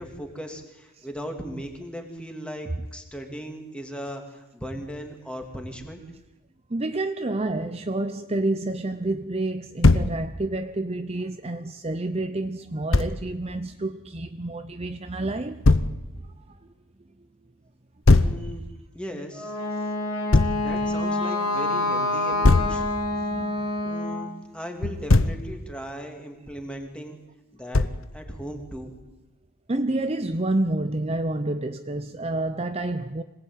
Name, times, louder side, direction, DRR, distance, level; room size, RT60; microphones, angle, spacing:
voice 1, 0.0-6.0 18.1-18.6 18.9-19.6 20.6-22.8 23.8-27.2 27.5-27.9 28.1-28.9, equal, 5° left, 3.0 m, -37 dB
voice 2, 6.7-15.8 16.2-16.6 23.1-23.7 29.7-33.2, right 2 dB, 25° right, 0.8 m, -29 dB
Thump thud, 9.8-10.1 12.9-13.1 15.6-15.9 18.1-18.4 20.3-20.6 22.4-22.8 24.8-25.4 27.7-28.1, left 2 dB, 60° left, 1.0 m, -18 dB
Wind instrument woodwind instrument, 19.3-24.3, left 2 dB, 90° left, 4.6 m, -27 dB
26.0 x 19.0 x 9.2 m
head